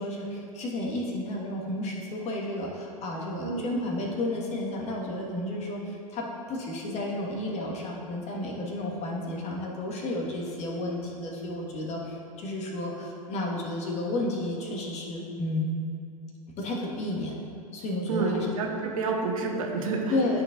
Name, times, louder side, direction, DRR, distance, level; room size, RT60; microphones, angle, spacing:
voice 1, 0.0-15.7 16.6-17.4 17.7-18.5 20.1-20.4, left 1 dB, 35° left, -2 dB, 1.5 m, -32 dB
voice 2, 3.4-3.7 18.1-20.0, right 4 dB, 65° right, 1 dB, 1.1 m, -29 dB
12.5 x 4.5 x 2.5 m, 2.6 s
hypercardioid pair, 95°, 19 cm